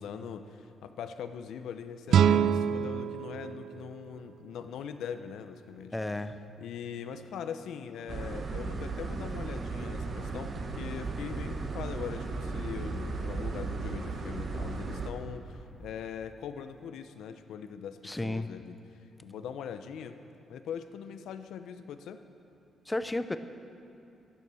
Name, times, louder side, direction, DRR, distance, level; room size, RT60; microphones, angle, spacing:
voice 1, 0.0-5.9 6.6-18.8 19.2-20.2 20.5-22.2, left 7 dB, 85° left, 9 dB, 0.7 m, -41 dB
sound 1, 2.1-5.1, right 8 dB, 70° right, 0.3 m, -27 dB
voice 2, 5.9-6.4 18.0-18.5 22.9-23.4, left 2 dB, 10° left, 11 dB, 0.5 m, -32 dB
sound 2, 8.1-15.1, right 3 dB, 40° right, 1.1 m, -35 dB
12.5 x 11.0 x 7.0 m, 2.6 s
cardioid pair, 130°, 0 cm